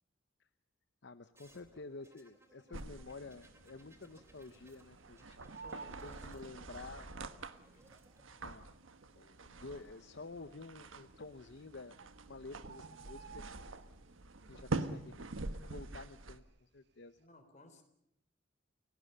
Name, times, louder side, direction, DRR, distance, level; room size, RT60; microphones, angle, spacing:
voice 1, 1.0-5.5 5.9-7.1 8.4-8.7 9.1-12.0 12.3-13.4 14.5-15.3 15.7-17.2, left 3 dB, 60° left, 11 dB, 0.8 m, -50 dB
sound 1, 1.3-9.9 11.0-11.6, right 1 dB, 15° right, 3.0 m, -67 dB
Bird, 2.6-3.2 3.5-3.6 3.8-5.0 5.3-7.1 8.0-8.1 8.7-8.8 9.0-9.1 9.8-10.2 11.2-11.3 11.6-11.7 12.0-14.3 14.6-14.9 15.2-16.6 16.9-17.2, right 5 dB, 55° right, 1.4 m, -53 dB
sound 2, 2.7-16.4, right 2 dB, 80° right, 1.3 m, -46 dB
voice 2, 5.6-6.8 7.7-7.9 17.2-17.8, left 1 dB, 35° left, 7 dB, 3.8 m, -59 dB
30.0 x 17.5 x 6.8 m, 0.78 s
head